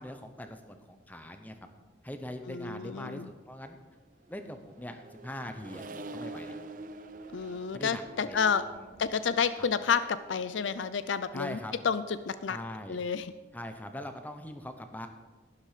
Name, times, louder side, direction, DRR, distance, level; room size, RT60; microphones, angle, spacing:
voice 1, 0.0-1.6 2.0-3.8 4.3-5.9 6.1-6.6 7.7-9.0 9.6-9.7 11.3-11.7 12.5-13.0 13.5-15.1, left 1 dB, 10° left, 7 dB, 0.8 m, -42 dB
voice 2, 2.5-3.3 7.3-8.6 9.0-11.6 11.8-12.6 12.9-13.3, left 6 dB, 85° left, 14 dB, 0.5 m, -30 dB
Accelerating revving vroom, 4.2-10.9, right 2 dB, 45° right, 0.6 m, -46 dB
12.0 x 10.5 x 5.0 m, 1.3 s
head